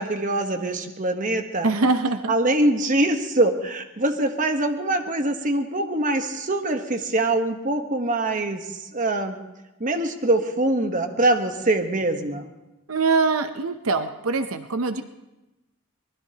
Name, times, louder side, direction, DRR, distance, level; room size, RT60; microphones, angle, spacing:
voice 1, 0.0-1.7 2.3-9.4 9.8-12.5, right 2 dB, 35° right, 6 dB, 1.2 m, -23 dB
voice 2, 1.6-2.3 12.9-15.0, right 3 dB, 80° right, 9 dB, 0.8 m, -23 dB
24.0 x 19.5 x 2.9 m, 1.0 s
head